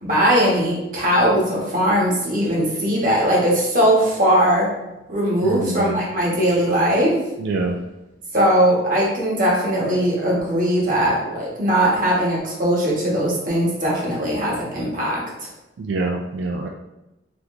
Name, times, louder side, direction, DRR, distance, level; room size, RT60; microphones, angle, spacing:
voice 1, 0.0-4.7 5.1-7.2 8.3-15.2, equal, 50° right, -4 dB, 1.0 m, -19 dB
voice 2, 5.4-6.0 7.4-7.8 15.8-16.7, right 3 dB, 85° right, 2 dB, 0.3 m, -25 dB
3.6 x 2.8 x 2.4 m, 0.96 s
head